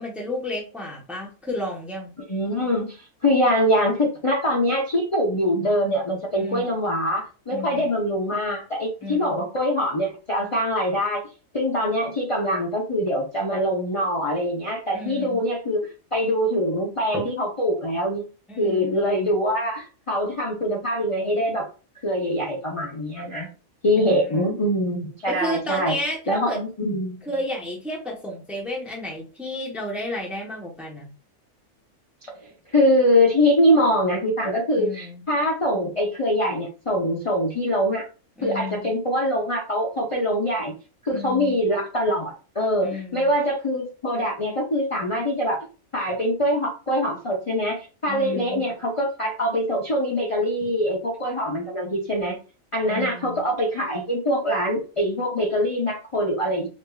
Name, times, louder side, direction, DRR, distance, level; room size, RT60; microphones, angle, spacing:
voice 1, 0.0-2.1 6.4-6.7 7.5-7.9 9.0-9.4 14.9-15.4 18.5-19.0 23.9-24.6 25.3-26.6 27.2-31.1 34.8-35.2 38.4-38.9 41.1-41.5 42.8-43.3 48.1-48.6 52.9-53.4, left 1 dB, ahead, -1 dB, 0.9 m, -32 dB
voice 2, 2.3-3.0 3.2-11.2 11.5-18.2 18.6-21.7 22.0-23.5 23.8-26.0 26.3-27.2 32.4-38.0 38.4-40.7 41.0-45.7 45.9-52.4 52.7-56.7, equal, 30° left, -2 dB, 0.7 m, -23 dB
5.2 x 2.6 x 2.3 m, 0.34 s
omnidirectional pair, 1.4 m